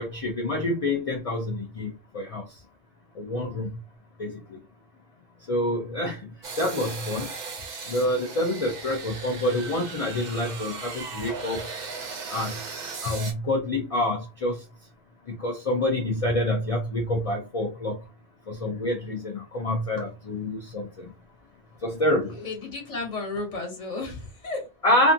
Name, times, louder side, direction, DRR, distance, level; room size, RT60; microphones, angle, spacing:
voice 1, 0.0-2.4 3.2-3.7 4.2-4.3 5.5-6.2 6.6-7.3 7.9-11.6 12.3-12.5 13.0-14.5 15.4-18.0 18.5-21.1 21.8-22.3 24.8-25.1, left 1 dB, 50° left, 1 dB, 0.4 m, -27 dB
sound 1, 6.4-13.3, right 4 dB, 50° right, 0.6 m, -37 dB
voice 2, 22.3-24.7, left 3 dB, 35° left, 0 dB, 1.0 m, -33 dB
2.6 x 2.4 x 2.6 m, 0.28 s
omnidirectional pair, 1.3 m